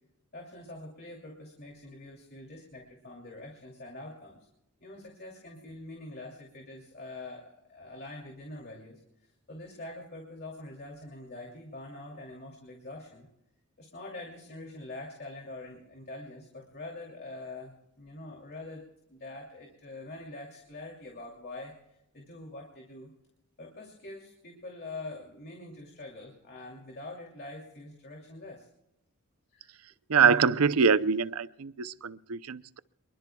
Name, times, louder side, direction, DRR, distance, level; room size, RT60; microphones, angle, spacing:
voice 1, 0.3-4.4 4.8-13.3 13.8-18.8 19.1-21.7 22.1-23.1 23.6-28.7 29.5-29.7, left 2 dB, 45° left, 0 dB, 2.8 m, -44 dB
voice 2, 30.1-32.8, right 6 dB, 75° right, 16 dB, 0.6 m, -24 dB
26.0 x 23.0 x 2.3 m, 0.86 s
head